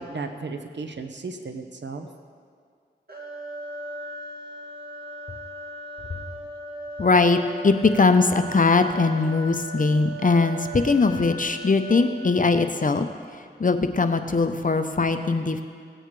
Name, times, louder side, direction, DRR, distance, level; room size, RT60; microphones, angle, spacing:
voice 1, 0.0-2.1, right 3 dB, 75° right, 6 dB, 0.9 m, -34 dB
sound 1, 3.1-13.0, right 1 dB, 60° right, 2.2 m, -38 dB
voice 2, 7.0-13.1 13.6-15.6, left 3 dB, 45° left, 8 dB, 0.7 m, -21 dB
17.0 x 8.9 x 3.2 m, 2.1 s
cardioid pair, 40°, 19 cm